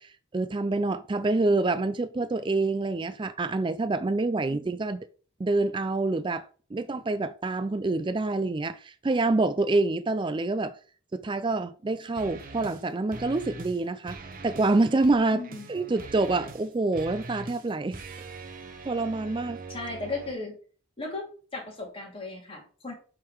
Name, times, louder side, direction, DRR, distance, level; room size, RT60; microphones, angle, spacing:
voice 1, 0.0-5.0 5.4-6.5 6.7-10.7 11.1-14.2 14.4-15.4 15.7-18.0 18.8-19.6, right 2 dB, 20° right, 0.3 m, -26 dB
sound 1, 12.2-12.8 13.1-13.8 14.0-20.3, right 3 dB, 40° right, 0.9 m, -43 dB
voice 2, 15.3-15.7 19.7-20.6 21.0-21.3 21.5-22.9, left 3 dB, 25° left, 2.3 m, -36 dB
7.6 x 3.8 x 4.8 m
head